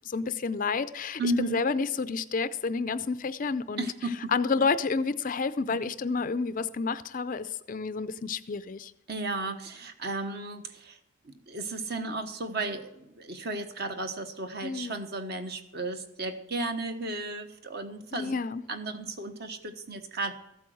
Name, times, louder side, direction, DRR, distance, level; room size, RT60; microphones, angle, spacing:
voice 1, 0.0-3.9 4.3-8.9 14.6-15.0 18.1-18.6, left 4 dB, 40° left, 14 dB, 0.4 m, -30 dB
voice 2, 1.2-1.6 3.8-4.3 5.7-5.9 9.1-11.0 11.2-18.3 18.7-20.3, right 2 dB, 45° right, 7 dB, 1.2 m, -34 dB
14.5 x 8.5 x 6.4 m, 0.86 s
head